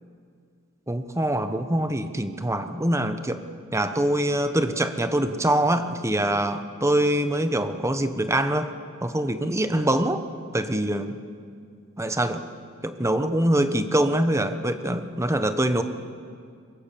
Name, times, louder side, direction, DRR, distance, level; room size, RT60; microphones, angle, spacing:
voice 1, 0.9-3.4 3.7-8.7 9.0-10.2 10.5-11.2 12.0-12.4 12.8-15.8, right 1 dB, 15° right, 9 dB, 1.1 m, -24 dB
24.0 x 22.0 x 7.0 m, 2.2 s
head